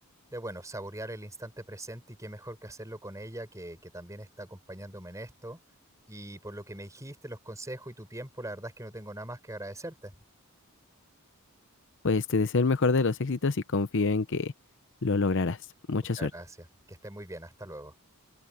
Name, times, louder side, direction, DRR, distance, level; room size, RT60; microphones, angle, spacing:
voice 1, 0.3-5.6 6.1-10.1 16.2-17.9, right 1 dB, 15° right, 4.9 m, -41 dB
voice 2, 12.0-14.5 15.0-15.6 15.9-16.3, left 3 dB, 55° left, 0.7 m, -26 dB
open air
head